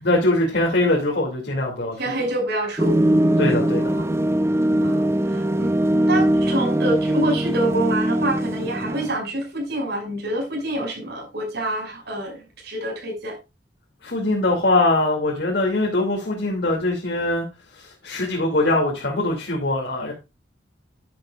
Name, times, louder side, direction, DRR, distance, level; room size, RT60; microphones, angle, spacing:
voice 1, 0.0-2.0 3.4-3.9 14.0-17.4 17.7-20.1, left 2 dB, 60° left, 2.6 m, -22 dB
voice 2, 2.0-3.5 3.9-4.1 4.8-13.4, right 1 dB, 60° right, 6.0 m, -27 dB
sound 1, 2.8-9.1, right 1 dB, 15° right, 0.7 m, -21 dB
11.5 x 10.5 x 2.4 m
head